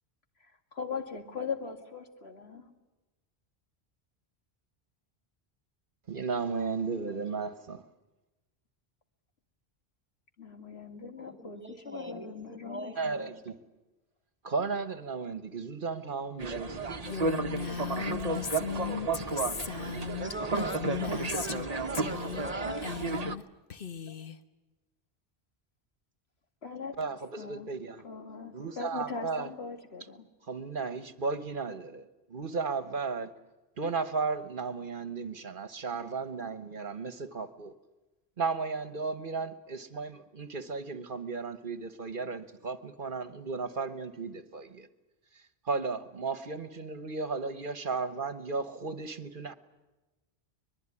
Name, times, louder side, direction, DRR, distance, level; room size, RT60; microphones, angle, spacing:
voice 1, 0.7-2.7 7.1-7.2 10.4-13.4 26.6-27.7 28.0-30.3, left 5 dB, 80° left, 2.5 m, -40 dB
voice 2, 6.1-7.8 13.0-13.6 14.4-16.9 27.0-28.0 28.5-29.5 30.5-32.0 32.3-33.3 33.8-37.7 38.4-44.9 45.6-49.5, right 4 dB, 55° right, 1.3 m, -34 dB
voice 3, 11.2-13.3 20.2-23.0 24.1-24.2, right 1 dB, 10° right, 1.8 m, -41 dB
sound 1, 16.4-23.4, right 3 dB, 40° right, 1.0 m, -33 dB
Female speech woman speaking, 17.0-21.7 21.9-22.5 22.8-23.4 23.7-24.4, left 7 dB, 60° left, 1.3 m, -37 dB
23.5 x 21.5 x 9.8 m
omnidirectional pair, 1.1 m